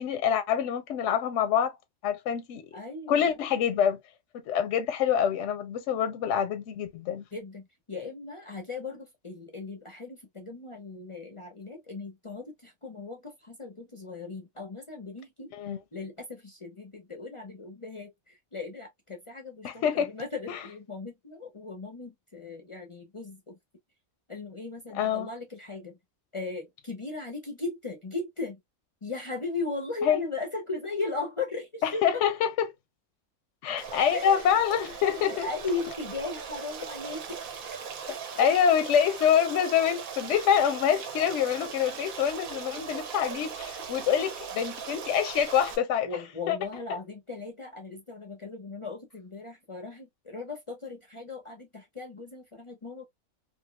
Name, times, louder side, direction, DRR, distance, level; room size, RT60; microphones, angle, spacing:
voice 1, 0.0-1.8 2.0-2.6 3.1-4.0 4.3-7.2 15.5-15.8 19.6-20.1 20.5-20.6 24.9-25.3 30.0-30.2 31.8-32.7 33.6-35.5 38.4-46.1 46.5-46.6, left 8 dB, 65° left, 0.8 m, -26 dB
voice 2, 2.7-3.3 7.3-23.6 24.3-26.0 26.3-28.6 29.0-32.0 34.1-34.5 34.7-37.8 38.3-38.5 46.0-53.1, left 3 dB, 45° left, 0.4 m, -37 dB
Stream, 33.8-45.8, right 6 dB, 75° right, 1.3 m, -39 dB
3.5 x 2.6 x 2.2 m
omnidirectional pair, 1.5 m